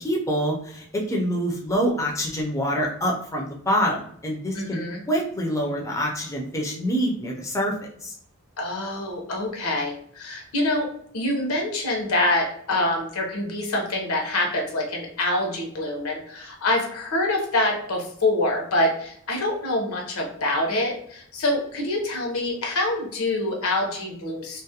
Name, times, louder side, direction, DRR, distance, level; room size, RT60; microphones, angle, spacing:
voice 1, 0.0-4.8 5.1-7.7 8.0-8.2, equal, 15° left, -1 dB, 0.4 m, -26 dB
voice 2, 4.5-5.0 8.6-10.9 11.1-24.6, left 1 dB, 85° left, 1 dB, 0.7 m, -25 dB
2.3 x 2.0 x 2.7 m, 0.65 s
head